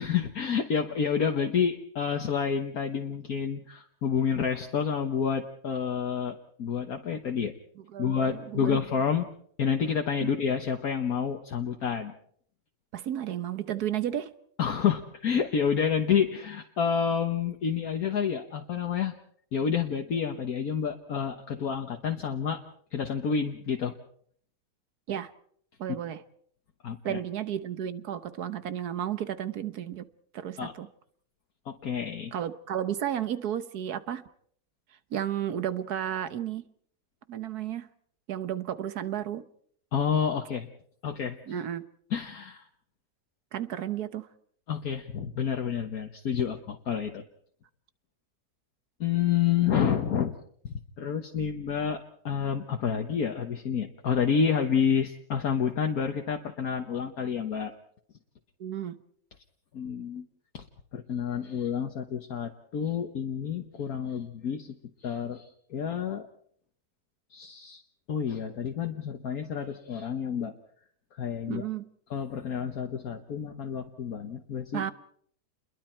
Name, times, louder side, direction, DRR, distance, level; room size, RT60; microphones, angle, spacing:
voice 1, 0.0-7.5 8.0-9.2 9.6-12.1 14.6-19.1 19.5-22.6 22.9-23.9 26.8-27.2 30.6-30.7 31.6-32.3 39.9-40.7 41.0-41.4 42.1-42.7 44.7-47.2 49.0-50.3 50.6-57.7 59.7-60.2 60.5-60.6 60.9-64.7 65.0-66.3 67.3-67.8 68.1-70.5 71.1-71.6 72.1-74.8, left 7 dB, 60° left, 1.7 m, -29 dB
voice 2, 7.9-8.8 10.2-10.3 12.9-14.3 25.1-25.3 25.8-26.2 27.0-30.1 30.3-30.9 32.3-34.3 35.1-36.6 37.3-37.9 38.3-39.4 41.5-41.9 43.5-44.3 58.6-59.0 71.5-71.8 74.7-74.9, right 10 dB, 65° right, 1.5 m, -33 dB
30.0 x 22.0 x 4.5 m
omnidirectional pair, 1.8 m